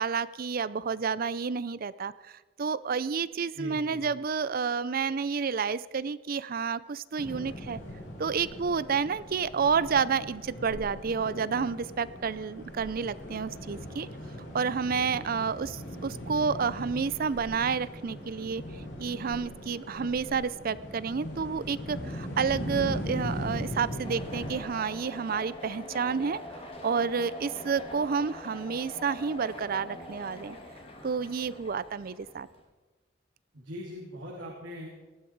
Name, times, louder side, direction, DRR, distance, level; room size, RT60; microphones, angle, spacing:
voice 1, 0.0-7.8 8.2-14.1 14.5-30.6 31.0-32.5, right 5 dB, 50° right, 18 dB, 0.5 m, -30 dB
voice 2, 3.5-4.0 33.5-34.9, equal, 85° right, -3 dB, 3.0 m, -41 dB
sound 1, 7.2-24.6, equal, 70° left, 5.9 m, -39 dB
sound 2, 24.0-32.6, left 1 dB, 30° left, 2.9 m, -44 dB
19.0 x 14.0 x 4.7 m, 1.2 s
head